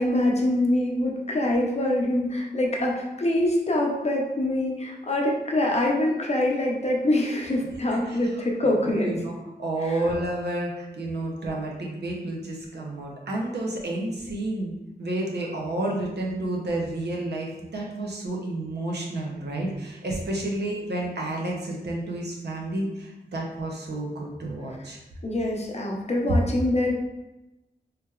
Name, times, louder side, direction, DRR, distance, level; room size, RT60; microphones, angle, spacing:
voice 1, 0.0-9.1 9.8-10.0 20.5-20.6 25.2-27.0, left 1 dB, 40° left, -1 dB, 0.6 m, -24 dB
voice 2, 8.6-9.3 9.6-25.0, right 1 dB, 75° right, -1 dB, 0.7 m, -30 dB
3.2 x 3.0 x 2.3 m, 1.0 s
wide cardioid pair, 75°, 18 cm